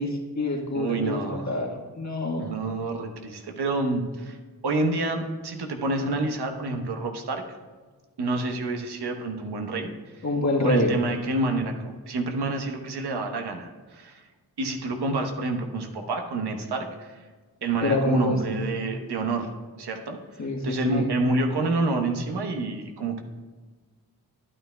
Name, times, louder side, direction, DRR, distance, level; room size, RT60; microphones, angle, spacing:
voice 1, 0.0-2.5 10.2-11.0 17.8-18.4 20.4-21.1, left 1 dB, 45° left, 0 dB, 1.5 m, -26 dB
voice 2, 0.7-1.5 2.4-4.4 4.6-7.4 8.2-9.9 10.6-14.2 14.6-17.2 17.6-20.2 20.6-23.2, right 2 dB, 80° right, 4 dB, 1.1 m, -28 dB
12.0 x 9.1 x 2.3 m, 1.4 s
cardioid pair, 40°, 39 cm